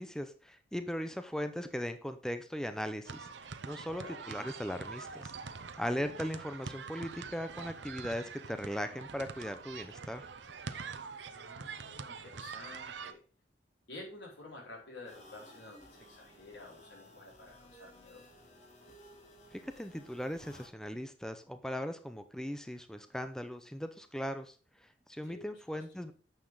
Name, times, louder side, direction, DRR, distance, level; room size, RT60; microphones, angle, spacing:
voice 1, 0.0-3.3 3.6-5.3 5.8-10.3 19.5-24.5 24.8-26.1, equal, 5° left, 9 dB, 0.6 m, -38 dB
sound 1, 3.0-13.1, right 5 dB, 75° right, 0.7 m, -45 dB
voice 2, 11.2-13.2 13.9-18.2 25.2-25.8, left 2 dB, 80° left, -3 dB, 4.7 m, -51 dB
sound 2, 15.1-20.7, left 1 dB, 40° left, 2.3 m, -57 dB
9.5 x 6.8 x 3.9 m, 0.37 s
head